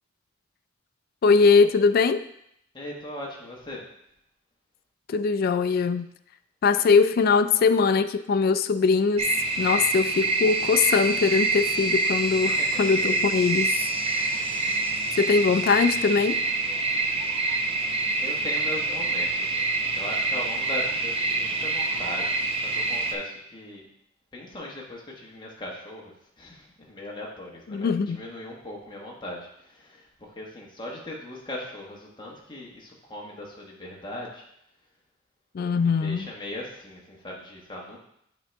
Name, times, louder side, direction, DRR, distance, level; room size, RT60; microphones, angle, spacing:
voice 1, 1.2-2.2 5.1-6.1 6.6-9.3 9.6-13.7 14.1-14.7 15.2-16.4 27.7-28.2 35.5-36.3, left 5 dB, 45° left, 11 dB, 0.3 m, -22 dB
voice 2, 2.7-3.8 12.5-13.0 14.0-14.4 18.2-23.9 24.3-34.4 35.7-38.0, left 1 dB, 25° left, -2 dB, 1.2 m, -39 dB
sound 1, 9.2-23.2, right 3 dB, 30° right, 0.6 m, -26 dB
8.6 x 3.8 x 3.4 m, 0.75 s
head